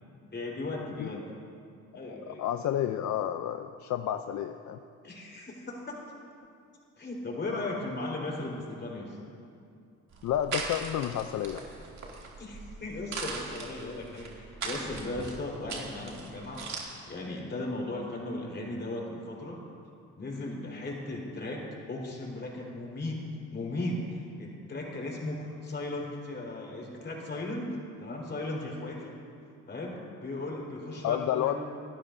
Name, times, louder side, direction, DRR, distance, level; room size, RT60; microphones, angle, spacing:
voice 1, 0.3-1.2 1.9-2.4 5.0-6.0 7.0-9.2 12.4-19.6 20.2-21.6 21.9-23.2 23.5-29.1 29.7-31.6, left 2 dB, 35° left, -2 dB, 4.2 m, -37 dB
voice 2, 1.9-4.8 10.2-11.6 31.0-31.5, left 11 dB, 70° left, 8 dB, 0.6 m, -31 dB
sound 1, 10.1-16.8, right 4 dB, 65° right, 2.3 m, -40 dB
27.0 x 12.5 x 2.6 m, 2.5 s
cardioid pair, 90°, 30 cm